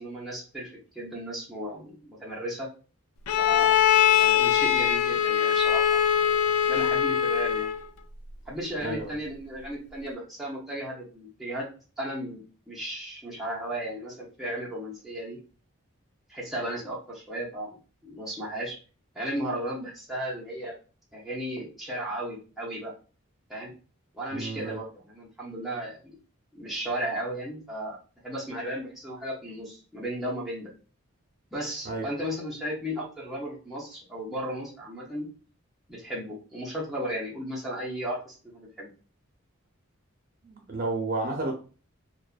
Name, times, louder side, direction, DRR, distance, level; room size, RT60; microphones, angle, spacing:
voice 1, 0.0-2.7 3.4-3.8 4.2-6.3 6.6-7.7 8.5-11.7 12.0-15.4 16.3-17.8 18.0-18.8 19.1-20.7 21.1-22.9 23.5-23.7 24.1-26.2 26.5-28.0 28.2-30.7 31.5-35.3 35.9-38.9, right 1 dB, ahead, 0.6 m, -35 dB
Bowed string instrument, 3.3-7.9, left 9 dB, 85° left, 0.3 m, -22 dB
voice 2, 8.8-9.1 24.3-24.8 31.8-32.1 40.4-41.5, right 2 dB, 40° right, 0.6 m, -31 dB
2.5 x 2.1 x 2.3 m
head